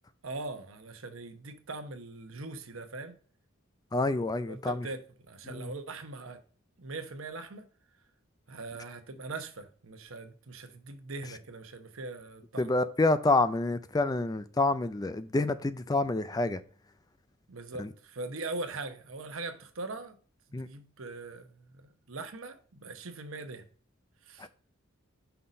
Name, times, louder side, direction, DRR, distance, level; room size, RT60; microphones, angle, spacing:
voice 1, 0.2-3.2 4.4-6.4 6.8-7.6 8.5-12.7 17.5-20.1 20.6-23.6 24.3-24.5, right 3 dB, 75° right, 1.0 m, -41 dB
voice 2, 3.9-4.9 5.5-5.7 12.6-16.6 17.8-17.9 20.5-20.7 24.4-24.5, left 2 dB, 20° left, 0.4 m, -28 dB
5.8 x 4.1 x 5.0 m
head